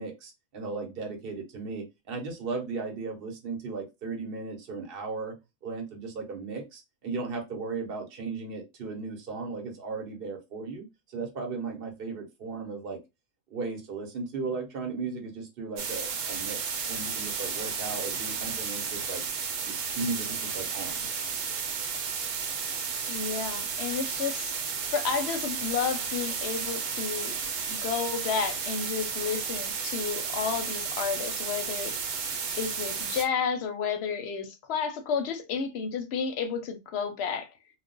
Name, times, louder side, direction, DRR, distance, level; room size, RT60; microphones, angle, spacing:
voice 1, 0.0-5.3 5.6-13.0 13.5-19.2 19.6-21.1, right 4 dB, 50° right, 1.0 m, -36 dB
sound 1, 15.8-33.3, right 6 dB, 75° right, 1.0 m, -33 dB
voice 2, 23.1-24.5 24.9-27.4 27.7-31.9 32.6-37.5, left 6 dB, 65° left, 0.8 m, -31 dB
2.3 x 2.1 x 3.7 m
omnidirectional pair, 1.3 m